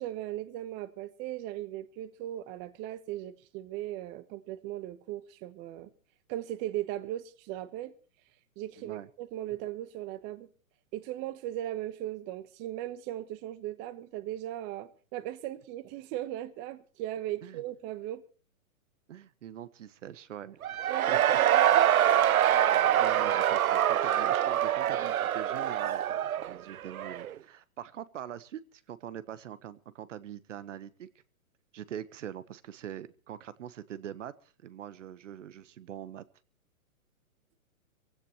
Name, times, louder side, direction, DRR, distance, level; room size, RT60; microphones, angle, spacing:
voice 1, 0.0-5.9 6.3-7.9 8.6-10.5 10.9-18.2 20.9-21.9, right 13 dB, 25° right, 1.1 m, -38 dB
voice 2, 8.8-9.1 17.4-17.6 19.1-20.6 21.1-21.4 22.6-31.1 31.7-36.2, right 10 dB, 60° right, 1.3 m, -43 dB
Cheering / Crowd, 20.6-27.3, right 11 dB, 85° right, 0.7 m, -25 dB
22.0 x 16.5 x 3.1 m
hypercardioid pair, 140°, 41 cm